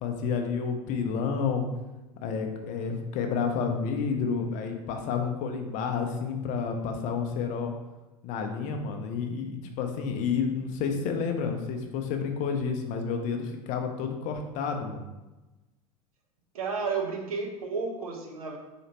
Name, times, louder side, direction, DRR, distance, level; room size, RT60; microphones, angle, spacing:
voice 1, 0.0-1.6 2.2-7.7 8.2-15.1, left 6 dB, 40° left, 5 dB, 0.6 m, -30 dB
voice 2, 16.5-18.6, right 4 dB, 70° right, 2 dB, 0.7 m, -32 dB
4.3 x 2.8 x 2.8 m, 1.1 s
figure-of-eight pair, 80°, 19 cm